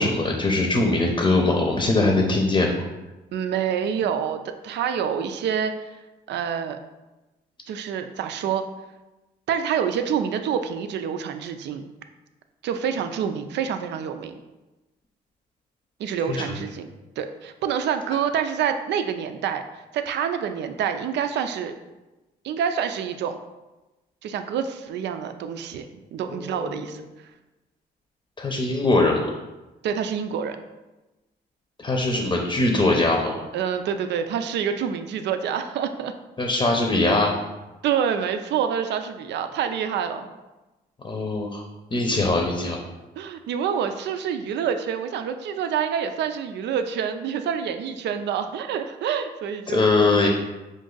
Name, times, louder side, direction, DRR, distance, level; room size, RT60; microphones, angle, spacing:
voice 1, 0.0-2.7 16.3-16.6 26.3-26.9 28.4-29.3 31.8-33.4 36.4-37.3 41.0-41.6 41.9-42.8 49.7-50.3, left 2 dB, 25° left, 1 dB, 0.7 m, -22 dB
voice 2, 3.3-5.9 6.3-6.8 7.7-8.6 9.5-11.8 12.6-14.4 16.0-16.9 17.2-19.6 19.9-21.7 22.4-23.4 24.2-27.0 29.8-30.6 33.5-36.1 37.8-40.3 43.2-49.9, right 8 dB, 70° right, 8 dB, 0.5 m, -27 dB
5.1 x 2.6 x 3.8 m, 1.1 s
cardioid pair, 80°, 18 cm